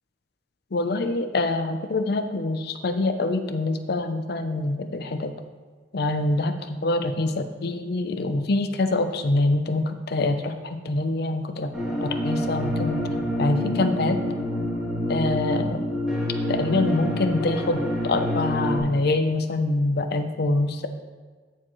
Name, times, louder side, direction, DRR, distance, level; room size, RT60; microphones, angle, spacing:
voice 1, 0.7-5.3 5.9-11.7 12.0-13.0 13.4-14.2 15.1-15.8 16.5-20.9, left 2 dB, 60° left, 8 dB, 0.6 m, -25 dB
sound 1, 11.7-18.8, equal, 5° right, 1.9 m, -27 dB
13.5 x 4.6 x 3.1 m, 1.5 s
head